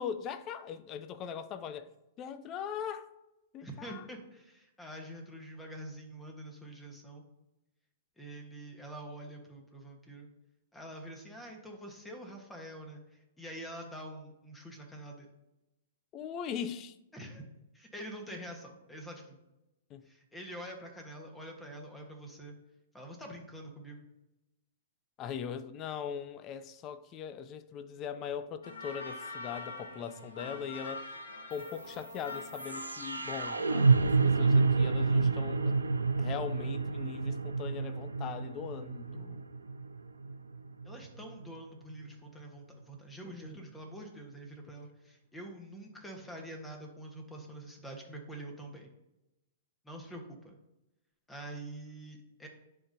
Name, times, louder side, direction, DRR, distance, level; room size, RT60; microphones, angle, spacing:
voice 1, 0.0-1.9 2.2-3.1 3.5-4.0 16.1-17.0 19.9-20.0 25.2-31.1 31.5-35.8 36.2-39.4 43.2-43.6, left 8 dB, 30° left, 0.5 m, -40 dB
voice 2, 3.6-7.2 8.2-10.3 10.7-15.3 17.1-17.5 17.7-19.4 20.0-22.6 22.9-24.0 40.8-48.9 49.8-50.5 51.3-52.5, right 1 dB, 10° left, 1.4 m, -46 dB
sound 1, 28.6-34.0, left 2 dB, 75° left, 1.2 m, -44 dB
sound 2, 31.5-41.5, right 4 dB, 85° right, 0.5 m, -29 dB
10.5 x 3.8 x 2.8 m
figure-of-eight pair, 110°, 0 cm